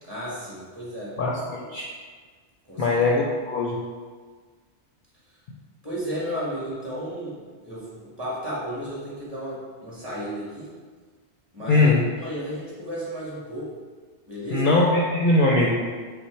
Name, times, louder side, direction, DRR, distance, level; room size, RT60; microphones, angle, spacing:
voice 1, 0.0-1.2 2.7-3.0 5.8-7.3 7.6-10.7 11.5-13.7 14.3-14.7, equal, 20° right, -8 dB, 1.5 m, -33 dB
voice 2, 1.2-1.9 2.8-3.8 11.7-12.0 14.5-15.9, left 2 dB, 60° left, -2 dB, 0.6 m, -21 dB
5.7 x 2.0 x 4.4 m, 1.5 s
omnidirectional pair, 1.1 m